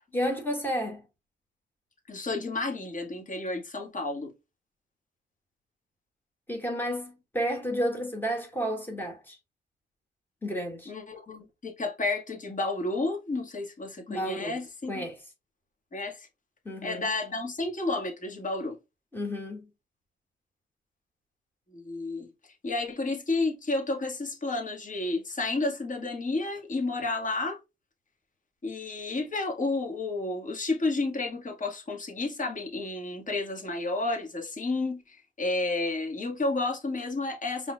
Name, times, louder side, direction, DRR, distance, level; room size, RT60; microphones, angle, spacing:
voice 1, 0.1-1.0 6.5-9.4 10.4-10.9 14.1-14.6 14.9-15.2 16.7-17.1 19.1-19.7, equal, 10° left, 2.2 m, -31 dB
voice 2, 2.1-4.3 10.9-15.0 15.9-16.3 16.8-18.8 21.7-22.3 22.6-27.6 28.6-37.7, left 2 dB, 45° left, 2.0 m, -31 dB
5.6 x 3.8 x 2.4 m
cardioid pair, 125°, 19 cm